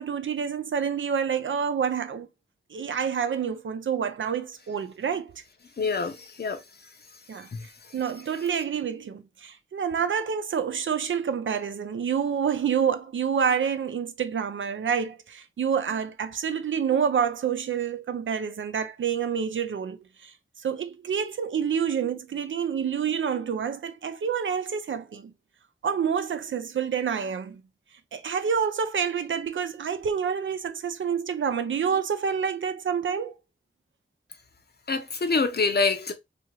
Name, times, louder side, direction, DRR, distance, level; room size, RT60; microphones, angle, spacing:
voice 1, 0.0-2.3 2.7-5.4 7.3-7.5 7.9-20.3 20.6-25.3 25.8-27.6 28.1-33.3, right 7 dB, 70° right, 0.4 m, -28 dB
voice 2, 5.8-6.6 7.5-7.7 34.9-36.1, left 4 dB, 50° left, 0.7 m, -26 dB
2.7 x 2.6 x 2.9 m
cardioid pair, 55°, 21 cm